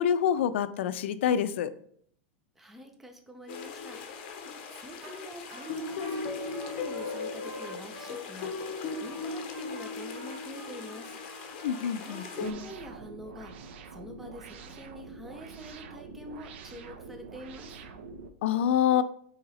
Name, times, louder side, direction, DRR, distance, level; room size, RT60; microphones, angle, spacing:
voice 1, 0.0-1.7 11.6-12.3 18.4-19.0, left 9 dB, 90° left, 13 dB, 0.3 m, -26 dB
voice 2, 2.6-4.4 4.7-11.1 12.0-17.8, equal, 5° right, 4 dB, 0.4 m, -46 dB
sound 1, 3.5-12.5, left 4 dB, 50° left, 0.7 m, -38 dB
Trumpet, 5.0-5.2 5.5-12.9, right 3 dB, 40° right, 0.7 m, -50 dB
sound 2, 12.4-18.3, right 4 dB, 70° right, 0.5 m, -46 dB
3.9 x 2.8 x 4.0 m, 0.62 s
supercardioid pair, 170°, 6 cm